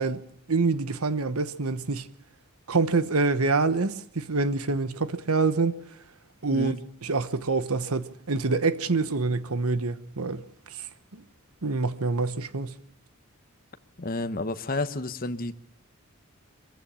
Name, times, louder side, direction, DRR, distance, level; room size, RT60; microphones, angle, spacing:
voice 1, 0.0-2.1 2.7-5.8 6.4-6.8 7.0-10.4 11.1-11.2 11.6-12.7, right 3 dB, 90° right, 1.2 m, -26 dB
voice 2, 14.0-15.7, left 2 dB, 40° left, 1.1 m, -31 dB
23.5 x 15.0 x 8.7 m
head